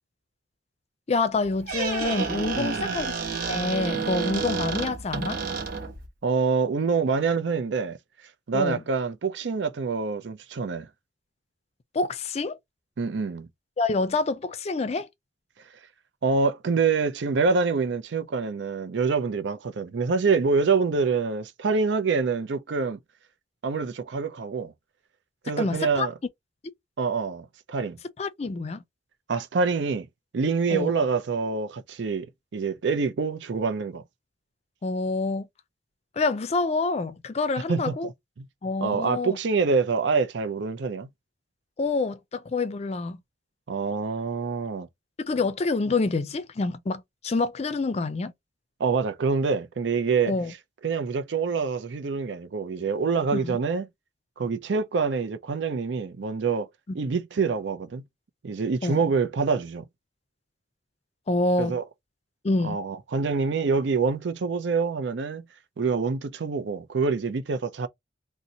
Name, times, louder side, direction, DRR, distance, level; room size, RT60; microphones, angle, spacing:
voice 1, 1.1-3.2 3.5-5.4 8.5-8.8 11.9-12.6 13.8-15.1 25.6-26.1 28.2-28.8 30.7-30.9 34.8-35.5 36.2-38.1 38.6-39.4 41.8-43.2 45.2-48.3 50.3-50.5 53.3-53.6 58.8-59.0 61.3-61.8 62.4-62.8, left 3 dB, 35° left, 0.4 m, -27 dB
Squeak, 1.4-6.1, right 5 dB, 50° right, 1.0 m, -30 dB
voice 2, 2.6-3.0 6.2-8.0 8.5-10.9 13.0-13.5 16.2-23.0 23.6-24.7 25.4-26.1 27.0-28.0 29.3-30.1 30.3-34.0 37.7-38.1 38.4-38.5 38.8-41.1 43.7-44.9 48.8-50.3 50.8-53.9 54.4-56.7 56.9-58.0 58.4-59.8 61.6-61.8 62.6-65.4 65.8-67.9, right 4 dB, 75° right, 0.5 m, -26 dB
2.7 x 2.1 x 3.8 m
head